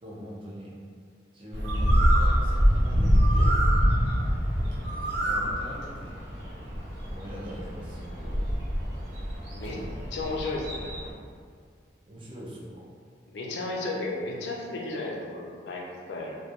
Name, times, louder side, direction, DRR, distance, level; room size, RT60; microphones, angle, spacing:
voice 1, 0.0-0.8 1.3-3.6 5.0-6.2 7.1-8.4 12.1-12.9, equal, 30° right, -6 dB, 0.5 m, -42 dB
Bird, 1.5-11.1, equal, 85° right, 0.6 m, -25 dB
voice 2, 9.5-9.8 10.1-10.9 13.3-16.4, left 2 dB, 70° left, -2 dB, 0.4 m, -34 dB
2.2 x 2.2 x 2.8 m, 2.1 s
head